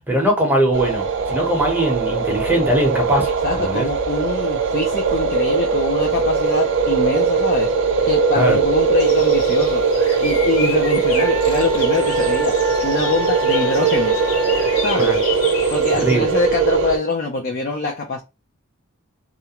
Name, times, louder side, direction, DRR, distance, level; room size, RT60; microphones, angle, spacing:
voice 1, 0.1-3.3 3.6-3.9 8.3-8.6 15.0-15.2 15.9-16.2, right 1 dB, 10° right, 0.8 m, -20 dB
sound 1, 0.7-17.0, right 5 dB, 60° right, 0.4 m, -20 dB
voice 2, 3.4-7.7 8.0-9.8 10.2-12.5 12.8-14.2 14.8-15.2 15.7-18.2, left 3 dB, 45° left, 0.5 m, -24 dB
sound 2, 9.0-16.2, left 5 dB, 80° left, 0.7 m, -32 dB
Wind instrument woodwind instrument, 11.2-15.0, equal, 60° left, 1.4 m, -30 dB
2.4 x 2.1 x 2.8 m
head